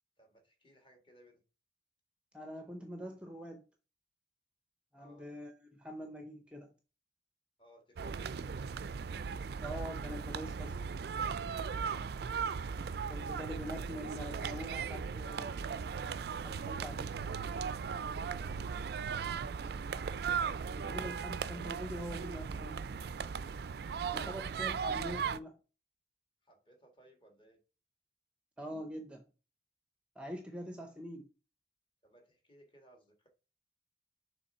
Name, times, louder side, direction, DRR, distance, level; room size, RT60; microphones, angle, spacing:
voice 1, 0.2-1.4 5.0-5.3 7.6-8.5 11.9-12.2 26.4-27.6 30.8-30.9 32.0-33.3, right 1 dB, 30° left, 1.6 m, -63 dB
voice 2, 2.3-3.6 4.9-6.7 9.6-10.8 13.1-15.6 16.4-17.2 20.7-22.9 24.1-25.5 28.6-29.2 30.2-31.3, equal, 5° right, 0.6 m, -44 dB
sound 1, 8.0-25.4, right 6 dB, 60° right, 0.4 m, -37 dB
6.9 x 3.4 x 4.3 m
head